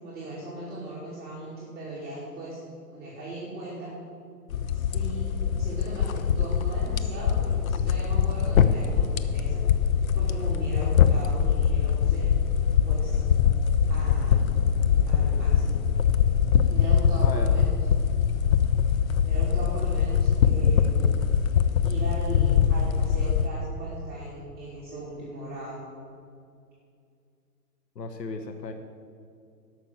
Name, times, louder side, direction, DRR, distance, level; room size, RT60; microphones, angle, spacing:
voice 1, 0.0-2.6 2.9-3.9 4.7-5.3 5.6-9.6 10.1-12.3 12.8-13.2 13.9-14.4 15.1-15.8 16.7-17.7 19.2-21.0 21.8-25.8, right 2 dB, 20° right, -8 dB, 2.6 m, -38 dB
sound 1, 4.5-23.5, left 7 dB, 55° left, 0.8 m, -23 dB
voice 2, 27.9-28.7, left 4 dB, 85° left, 6 dB, 1.0 m, -35 dB
12.5 x 5.9 x 7.2 m, 2.4 s
figure-of-eight pair, 125°, 48 cm